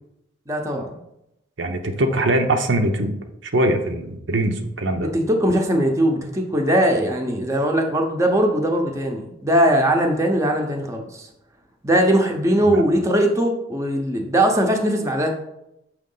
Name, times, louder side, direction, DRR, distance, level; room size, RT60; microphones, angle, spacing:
voice 1, 0.5-1.0 5.1-11.3 11.8-15.3, right 1 dB, 15° right, 2 dB, 0.8 m, -20 dB
voice 2, 1.6-3.1 3.4-5.1 12.6-12.8, right 1 dB, 70° right, 5 dB, 0.7 m, -22 dB
6.4 x 3.1 x 5.5 m, 0.82 s
head